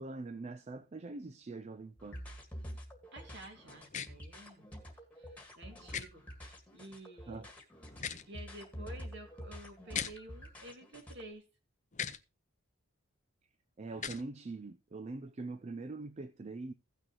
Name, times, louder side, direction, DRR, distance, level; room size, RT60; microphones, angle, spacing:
voice 1, 0.0-2.2 7.3-7.5 13.8-16.7, right 3 dB, 30° right, 0.4 m, -43 dB
sound 1, 2.0-11.3, equal, 5° left, 1.8 m, -48 dB
voice 2, 3.1-7.4 8.3-11.5, right 1 dB, 55° right, 2.4 m, -51 dB
sound 2, 3.9-4.1 5.9-6.1 7.9-8.3 9.9-10.1 11.9-12.2 13.9-14.2, left 8 dB, 35° left, 0.6 m, -37 dB
16.0 x 6.4 x 3.0 m
head